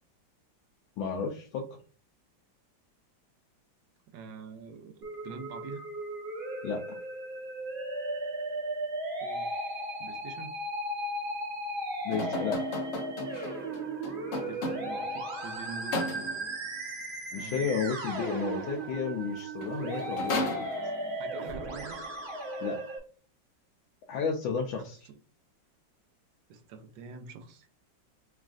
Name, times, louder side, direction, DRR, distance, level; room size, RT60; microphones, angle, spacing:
voice 1, 1.0-1.7 6.6-7.0 12.0-12.6 17.3-20.7 22.6-22.8 24.1-25.0, left 5 dB, 85° left, 0 dB, 1.4 m, -32 dB
voice 2, 4.1-5.8 9.2-9.5 10.0-10.5 14.5-16.5 17.3-17.8 21.2-22.1 24.7-25.2 26.5-27.7, right 5 dB, 75° right, 6 dB, 1.3 m, -45 dB
Musical instrument, 5.0-23.0, right 1 dB, 50° right, 0.6 m, -36 dB
sound 1, 12.1-15.1 15.9-16.6 19.2-19.3 19.6-21.2, left 1 dB, 65° left, 0.6 m, -35 dB
6.2 x 2.4 x 2.3 m, 0.40 s
omnidirectional pair, 2.1 m